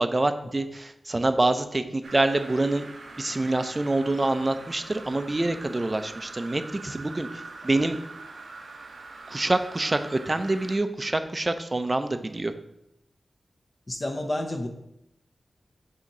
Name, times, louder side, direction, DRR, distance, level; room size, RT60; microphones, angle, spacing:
voice 1, 0.0-2.9 3.2-8.0 9.3-12.5, right 2 dB, 25° right, 9 dB, 0.5 m, -26 dB
sound 1, 2.0-10.8, right 3 dB, 75° right, 0.8 m, -43 dB
voice 2, 13.9-14.7, left 1 dB, 30° left, 3 dB, 0.7 m, -29 dB
7.3 x 2.8 x 5.3 m, 0.83 s
wide cardioid pair, 100°, 0 cm